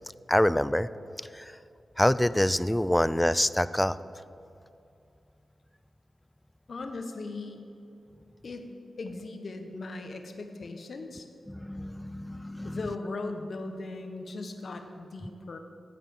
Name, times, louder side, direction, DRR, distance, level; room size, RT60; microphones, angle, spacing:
voice 1, 0.3-0.9 1.3-1.5 2.0-4.0 11.5-12.9, left 1 dB, 10° left, 16 dB, 0.3 m, -26 dB
voice 2, 6.7-7.7 8.4-8.7 9.0-11.3 12.6-15.6, left 3 dB, 60° left, 6 dB, 1.1 m, -38 dB
9.3 x 8.2 x 7.1 m, 2.6 s
cardioid pair, 75°, 0 cm